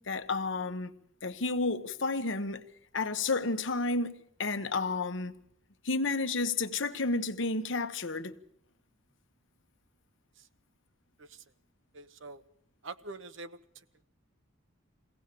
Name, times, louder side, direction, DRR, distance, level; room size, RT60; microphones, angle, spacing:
voice 1, 0.1-0.9 1.2-2.6 2.9-5.4 5.8-8.3, left 3 dB, 65° left, 1.1 m, -31 dB
voice 2, 11.9-12.4 12.8-13.6, right 3 dB, 65° right, 1.1 m, -44 dB
23.5 x 17.0 x 6.8 m
head